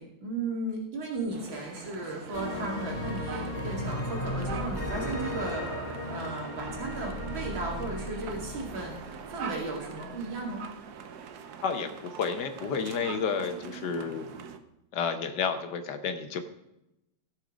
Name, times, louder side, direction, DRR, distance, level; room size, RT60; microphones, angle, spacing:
voice 1, 0.0-10.6, right 2 dB, 90° right, -2 dB, 3.1 m, -35 dB
sound 1, 1.3-14.6, right 7 dB, 60° right, 1.2 m, -44 dB
sound 2, 2.3-10.0, left 1 dB, 20° left, 1.9 m, -36 dB
voice 2, 11.6-14.2 14.9-16.4, left 6 dB, 65° left, 8 dB, 1.5 m, -31 dB
15.0 x 6.5 x 5.0 m, 0.89 s
omnidirectional pair, 2.1 m